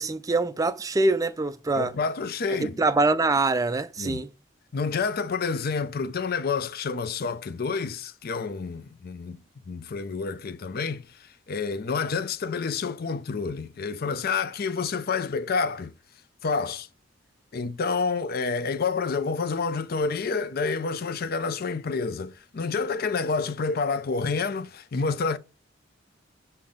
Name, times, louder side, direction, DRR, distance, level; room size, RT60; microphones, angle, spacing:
voice 1, 0.0-1.9 2.8-4.3, right 3 dB, 20° right, 0.3 m, -24 dB
voice 2, 1.7-2.8 4.0-4.2 4.7-9.4 9.7-15.9 16.4-16.9 17.5-25.4, left 4 dB, 50° left, 0.5 m, -29 dB
6.9 x 2.8 x 5.1 m
head